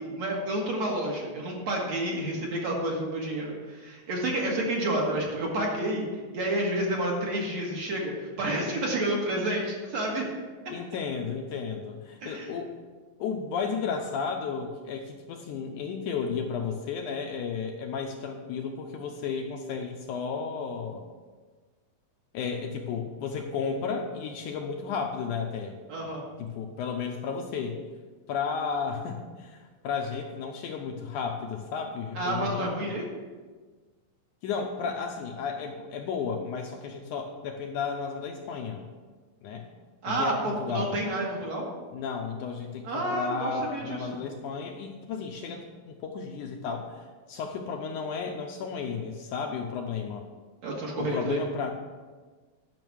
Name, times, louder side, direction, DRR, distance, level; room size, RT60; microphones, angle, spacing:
voice 1, 0.0-6.1 6.3-10.2 12.2-12.5 25.9-26.2 32.2-33.1 40.0-41.6 42.8-44.2 50.6-51.4, right 1 dB, 55° right, -2 dB, 2.4 m, -30 dB
voice 2, 10.7-12.7 13.2-21.0 22.3-25.7 26.4-27.8 28.3-32.9 34.4-38.8 39.4-39.7 40.1-41.0 41.9-47.0 47.3-50.3 51.0-51.7, left 5 dB, 75° left, 3 dB, 1.9 m, -33 dB
11.0 x 5.9 x 6.2 m, 1.4 s
omnidirectional pair, 4.0 m